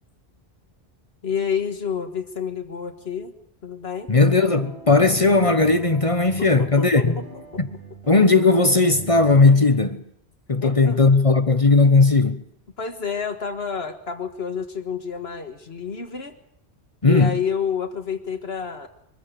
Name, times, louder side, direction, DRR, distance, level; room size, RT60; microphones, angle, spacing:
voice 1, 1.2-3.3 3.6-4.1 6.6-7.1 7.3-7.4 10.6-11.2 12.8-16.4 17.1-18.9, left 6 dB, 75° left, 1.9 m, -29 dB
voice 2, 4.1-7.2 7.6-7.7 8.1-10.0 10.5-12.4 17.0-17.3, left 3 dB, 35° left, 1.0 m, -17 dB
sound 1, 4.2-9.6, right 2 dB, 80° right, 6.2 m, -40 dB
23.5 x 15.0 x 8.4 m
omnidirectional pair, 1.1 m